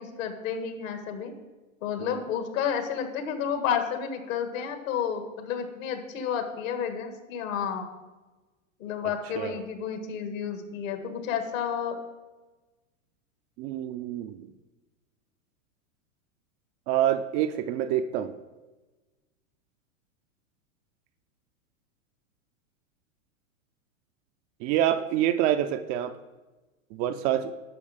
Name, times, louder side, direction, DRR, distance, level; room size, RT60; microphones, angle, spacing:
voice 1, 0.0-1.3 1.8-7.9 8.8-12.0, left 7 dB, 70° left, 6 dB, 1.9 m, -31 dB
voice 2, 13.6-14.5 16.9-18.3 24.6-26.2 26.9-27.5, right 11 dB, 30° right, 9 dB, 0.4 m, -27 dB
11.0 x 6.6 x 5.0 m, 1.2 s
hypercardioid pair, 125°, 41 cm